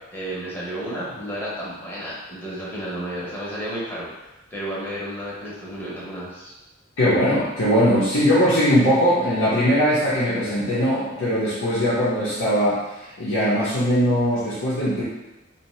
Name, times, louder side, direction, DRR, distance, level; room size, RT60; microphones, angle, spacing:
voice 1, 0.1-4.1 4.5-6.5, right 1 dB, 10° left, -7 dB, 0.7 m, -32 dB
voice 2, 7.0-15.0, equal, 85° left, -10 dB, 0.7 m, -20 dB
2.7 x 2.1 x 3.0 m, 1.1 s
head